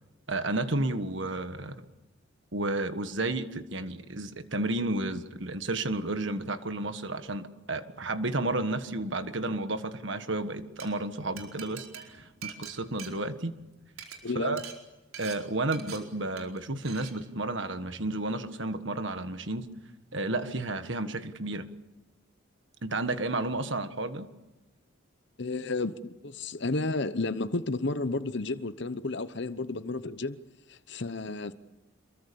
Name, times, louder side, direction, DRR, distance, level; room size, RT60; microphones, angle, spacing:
voice 1, 0.3-1.8 2.5-13.6 14.3-14.6 15.2-19.7 20.1-21.7 22.8-24.3, right 2 dB, 60° right, 1.6 m, -32 dB
Glass, 10.8-10.9 11.4-13.6 13.9-14.2 14.6-14.8 15.1-15.4 15.7-16.0 16.4-16.6 16.8-17.1, right 8 dB, 85° right, 4.7 m, -43 dB
voice 2, 14.2-14.6 25.4-25.9 26.2-30.4 30.7-31.5, left 3 dB, 55° left, 0.9 m, -32 dB
27.0 x 23.0 x 7.0 m
head